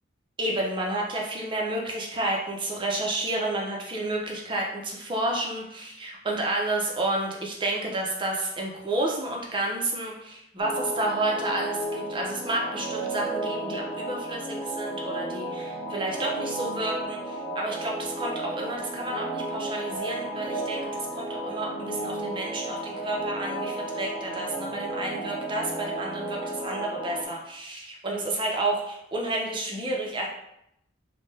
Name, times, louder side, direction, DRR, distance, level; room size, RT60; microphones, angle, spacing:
voice 1, 0.4-30.3, right 2 dB, 25° right, -1 dB, 0.5 m, -30 dB
sound 1, 10.6-27.2, right 1 dB, 25° left, 0.9 m, -33 dB
3.1 x 2.2 x 3.3 m, 0.79 s
head